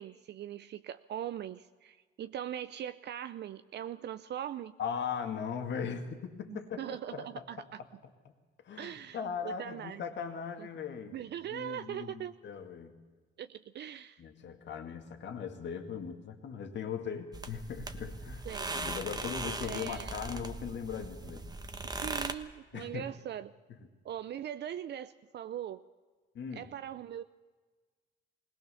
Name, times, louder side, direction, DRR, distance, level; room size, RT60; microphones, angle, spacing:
voice 1, 0.0-4.7 6.5-7.8 8.8-10.0 10.6-10.7 11.1-12.3 13.4-14.2 18.5-18.7 19.6-20.1 21.8-23.5 24.0-25.8 26.6-27.2, right 10 dB, 60° right, 12 dB, 0.5 m, -41 dB
voice 2, 4.8-7.7 8.6-11.2 11.5-13.0 14.2-18.5 18.7-21.5 22.7-23.1 26.3-26.7, left 7 dB, 65° left, 6 dB, 2.2 m, -39 dB
sound 1, 17.3-22.3, right 2 dB, 20° right, 1.3 m, -39 dB
20.5 x 18.0 x 7.0 m, 1.4 s
cardioid pair, 90°, 20 cm